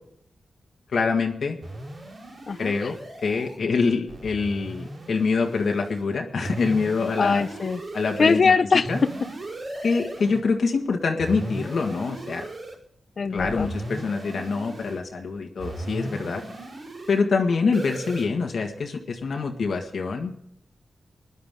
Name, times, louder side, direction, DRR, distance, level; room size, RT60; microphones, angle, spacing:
voice 1, 0.9-1.6 2.6-3.0 3.2-7.4 7.9-8.5 8.9-9.0 9.8-12.4 13.3-16.4 17.1-20.3, left 4 dB, 70° left, 2 dB, 1.8 m, -25 dB
sound 1, 1.6-3.6 4.1-6.0 6.4-8.4 8.9-10.4 11.2-12.8 13.4-15.0 15.6-17.2 17.7-18.3, right 1 dB, 50° right, 5.3 m, -37 dB
voice 2, 7.2-7.8 8.2-9.1 13.2-13.7, left 5 dB, 55° left, 13 dB, 0.7 m, -21 dB
20.5 x 11.5 x 3.7 m, 0.70 s
wide cardioid pair, 120°, 0 cm